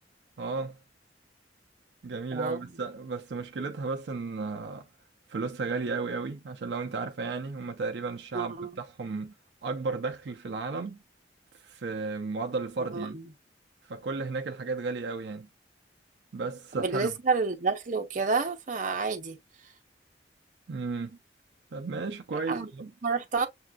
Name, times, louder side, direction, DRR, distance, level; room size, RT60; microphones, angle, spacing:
voice 1, 0.4-0.8 2.0-4.9 5.3-9.3 9.6-11.0 11.5-13.2 13.8-15.5 16.3-17.1 20.7-21.2 21.7-22.9, right 4 dB, 70° right, 0.5 m, -34 dB
voice 2, 2.3-2.7 8.3-8.7 12.8-13.2 16.7-19.4 22.5-22.7 23.0-23.5, right 4 dB, 45° right, 0.7 m, -29 dB
6.9 x 2.5 x 2.2 m
head